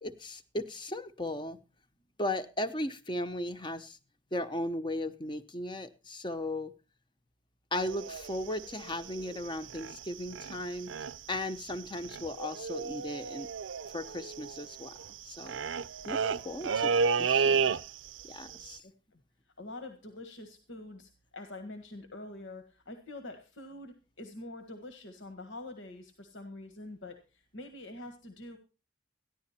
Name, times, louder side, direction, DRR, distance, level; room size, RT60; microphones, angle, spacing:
voice 1, 0.0-1.6 2.2-4.0 4.3-6.7 7.7-10.9 11.3-13.5 13.9-14.9 15.3-15.6 16.1-17.6 18.2-18.8, left 1 dB, 25° left, 11 dB, 0.8 m, -36 dB
sound 1, 7.7-10.1 10.3-10.6 10.9-11.4 11.6-11.7 11.9-18.2 18.5-18.8, right 5 dB, 80° right, 0.6 m, -32 dB
voice 2, 18.5-19.2 19.6-28.6, left 2 dB, 80° left, 7 dB, 1.7 m, -46 dB
14.5 x 11.0 x 4.3 m, 0.32 s
head